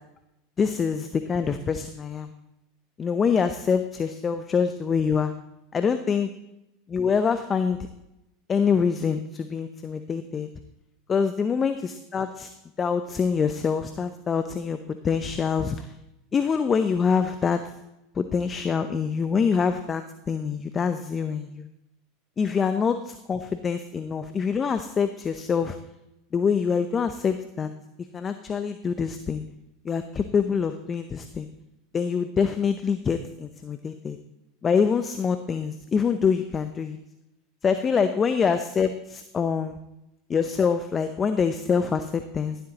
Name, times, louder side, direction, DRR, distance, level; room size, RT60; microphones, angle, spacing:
voice 1, 0.6-2.3 3.0-5.3 5.7-6.3 6.9-7.8 8.5-10.5 11.1-12.5 12.8-14.8 15.0-15.9 16.3-17.6 18.2-21.7 22.4-25.8 26.3-27.7 28.1-29.4 29.8-31.5 31.9-34.2 34.6-37.0 37.6-39.8 40.3-42.6, left 6 dB, 30° left, 9 dB, 0.7 m, -25 dB
12.0 x 11.5 x 3.0 m, 0.88 s
hypercardioid pair, 90°, 0 cm